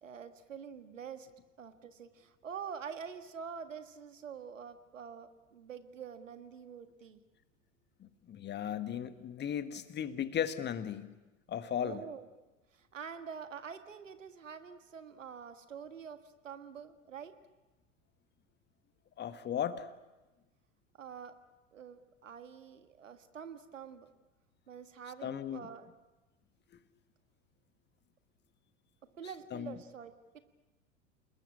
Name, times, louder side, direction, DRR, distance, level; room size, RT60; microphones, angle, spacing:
voice 1, 0.0-1.3 1.6-7.2 11.8-12.3 12.7-17.3 21.0-21.3 21.7-24.1 24.7-25.9 29.2-30.4, right 7 dB, 75° right, 9 dB, 1.7 m, -46 dB
voice 2, 8.0-11.1 11.5-12.0 19.2-19.9 25.2-25.7 29.5-29.7, left 9 dB, 25° left, 12 dB, 1.5 m, -36 dB
29.0 x 20.0 x 8.6 m, 1.1 s
figure-of-eight pair, 80°, 39 cm